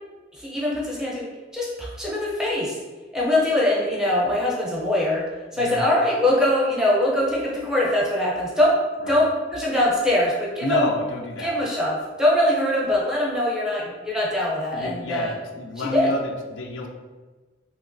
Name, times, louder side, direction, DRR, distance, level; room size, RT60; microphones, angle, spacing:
voice 1, 0.4-2.7 3.1-5.2 5.5-8.7 9.1-10.9 11.4-15.3 15.8-16.1, left 1 dB, 5° right, -6 dB, 0.6 m, -22 dB
voice 2, 5.6-5.9 9.0-9.2 10.6-11.5 14.7-16.9, left 1 dB, 85° left, 3 dB, 0.4 m, -28 dB
2.9 x 2.8 x 2.6 m, 1.3 s
head